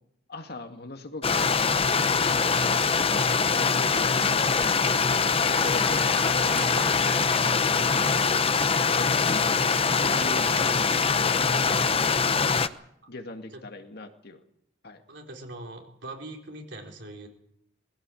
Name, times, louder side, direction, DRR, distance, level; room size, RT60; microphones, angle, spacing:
voice 1, 0.3-4.9 5.4-6.9 7.6-12.5 13.1-14.4 14.8-15.0, left 2 dB, 55° left, 6 dB, 2.0 m, -41 dB
Stream, 1.2-12.7, left 5 dB, 30° left, 0.8 m, -23 dB
sound 1, 3.9-7.4, left 1 dB, 5° left, 1.2 m, -42 dB
sound 2, 3.9-11.6, right 6 dB, 80° right, 3.3 m, -47 dB
voice 2, 15.1-17.3, right 2 dB, 65° right, 2 dB, 4.0 m, -41 dB
20.5 x 16.0 x 8.5 m, 0.74 s
head